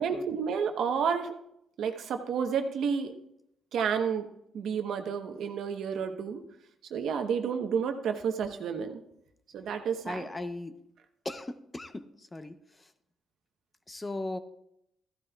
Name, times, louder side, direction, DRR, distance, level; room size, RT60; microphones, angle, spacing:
voice 1, 0.0-1.3 1.8-3.1 3.7-4.3 4.5-6.4 6.9-9.0 9.5-10.2, right 6 dB, 70° right, 6 dB, 1.0 m, -30 dB
voice 2, 10.0-10.8 11.2-12.9 13.9-14.4, left 2 dB, 20° left, 10 dB, 0.8 m, -38 dB
14.5 x 12.0 x 2.4 m, 0.78 s
cardioid pair, 90°, 0 cm